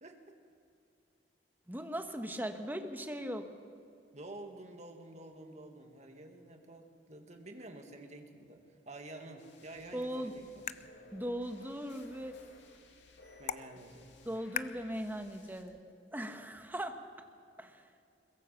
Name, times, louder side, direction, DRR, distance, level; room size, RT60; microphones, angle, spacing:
voice 1, 0.0-0.4 4.1-10.7 13.4-14.1, right 2 dB, 40° right, 4 dB, 2.2 m, -50 dB
voice 2, 1.7-3.5 9.9-10.3 11.1-12.4 14.2-15.8 16.1-17.0 17.6-17.8, equal, 10° right, 6 dB, 1.3 m, -39 dB
sound 1, 9.4-15.6, left 3 dB, 85° left, 2.5 m, -59 dB
sound 2, 9.8-15.8, left 8 dB, 40° left, 0.5 m, -46 dB
22.0 x 21.5 x 5.9 m, 2.5 s
head